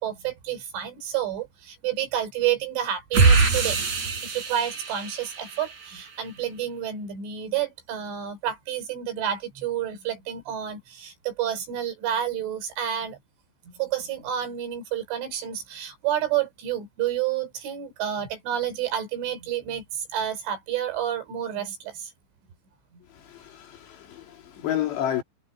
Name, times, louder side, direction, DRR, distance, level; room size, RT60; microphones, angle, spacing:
voice 1, 0.0-3.8 4.2-13.2 13.7-22.1, right 10 dB, 85° right, 6.7 m, -29 dB
sound 1, 3.1-5.9, right 4 dB, 40° right, 6.5 m, -23 dB
voice 2, 23.1-25.2, left 11 dB, 65° left, 4.8 m, -30 dB
omnidirectional pair, 5.4 m